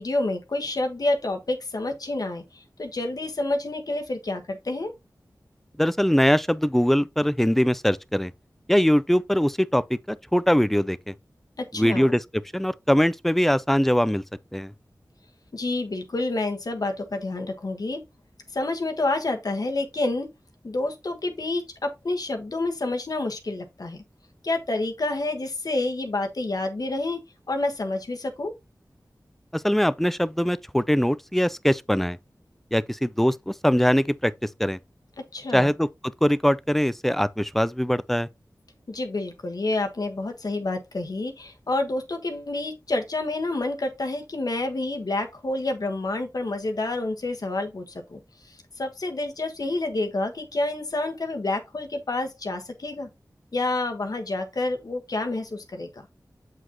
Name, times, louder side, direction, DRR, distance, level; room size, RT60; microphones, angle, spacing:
voice 1, 0.0-4.9 11.6-12.1 15.5-18.0 18.5-20.3 20.6-24.0 24.4-27.2 27.5-28.5 35.3-35.7 38.9-53.1 53.5-56.1, left 2 dB, 65° left, 1.3 m, -28 dB
voice 2, 5.8-8.3 8.7-11.1 11.7-12.2 12.5-14.2 14.5-14.7 29.5-32.2 32.7-34.8 35.5-35.9 36.2-38.3, equal, 5° left, 0.4 m, -22 dB
7.9 x 4.9 x 2.9 m
wide cardioid pair, 80°, 7 cm